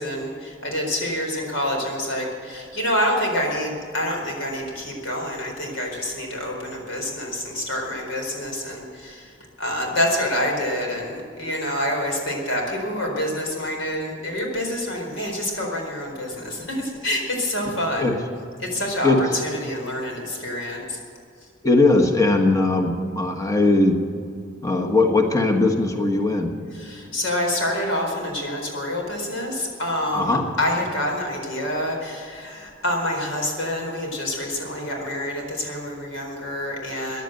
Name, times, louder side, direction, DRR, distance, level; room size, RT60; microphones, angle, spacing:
voice 1, 0.0-18.1 18.6-21.0 26.7-37.2, left 1 dB, 85° left, 1 dB, 4.3 m, -27 dB
voice 2, 21.6-24.0 24.6-26.6 30.1-30.5, left 2 dB, 15° left, 3 dB, 1.3 m, -19 dB
15.0 x 10.5 x 7.8 m, 2.3 s
head